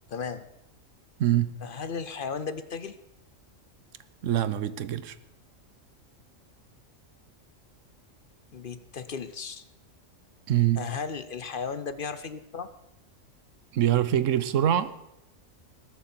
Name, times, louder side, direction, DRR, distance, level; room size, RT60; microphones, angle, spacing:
voice 1, 0.1-0.4 1.6-3.0 8.5-9.6 10.8-12.7, left 5 dB, 50° left, 0.8 m, -35 dB
voice 2, 1.2-1.5 4.2-5.2 10.5-10.8 13.7-14.9, right 11 dB, 80° right, 1.1 m, -24 dB
20.0 x 9.2 x 4.4 m
omnidirectional pair, 1.3 m